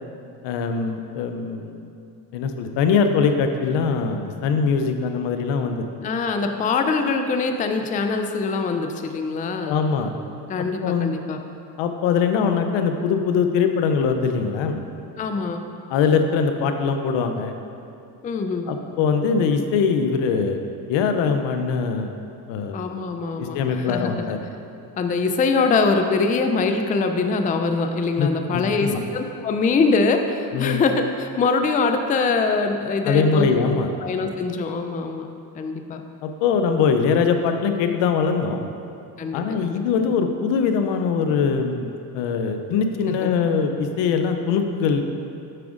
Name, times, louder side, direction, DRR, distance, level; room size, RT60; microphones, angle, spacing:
voice 1, 0.4-1.8 2.3-5.9 9.7-10.1 10.8-11.2 11.8-14.8 15.9-17.5 18.7-22.1 22.5-22.8 23.4-24.4 28.2-29.0 30.5-30.8 33.0-33.9 36.2-38.6 39.3-45.0, left 5 dB, 85° left, 6 dB, 0.6 m, -22 dB
voice 2, 6.0-9.8 10.5-11.4 15.2-15.6 18.2-18.7 22.7-24.3 25.0-35.3 35.6-36.0 39.2-39.8 43.1-43.3, left 4 dB, 20° left, 6 dB, 0.3 m, -23 dB
7.6 x 5.9 x 2.5 m, 2.5 s
cardioid pair, 85°, 43 cm